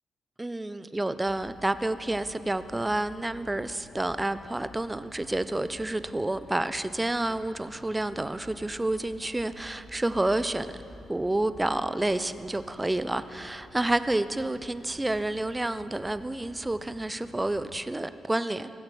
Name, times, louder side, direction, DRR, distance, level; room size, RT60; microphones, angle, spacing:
voice 1, 0.4-10.7 11.1-18.7, right 2 dB, 10° right, 13 dB, 0.4 m, -29 dB
sound 1, 1.2-17.8, left 1 dB, 70° left, 3.2 m, -51 dB
16.5 x 7.2 x 6.8 m, 2.8 s
cardioid pair, 115°, 0 cm